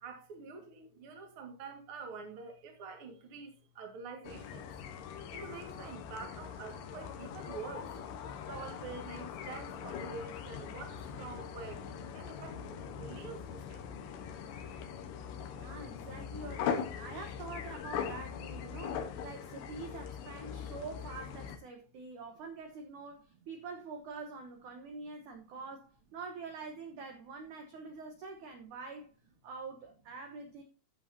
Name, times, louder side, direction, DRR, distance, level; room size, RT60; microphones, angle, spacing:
voice 1, 0.0-3.5 3.8-4.6 5.3-7.9 8.5-11.8 12.1-13.8, right 5 dB, 45° right, 2.0 m, -46 dB
sound 1, 4.2-21.6, left 7 dB, 85° left, 3.3 m, -41 dB
voice 2, 15.5-29.1 29.4-30.6, right 4 dB, 65° right, 2.1 m, -45 dB
14.0 x 8.0 x 2.8 m
omnidirectional pair, 4.9 m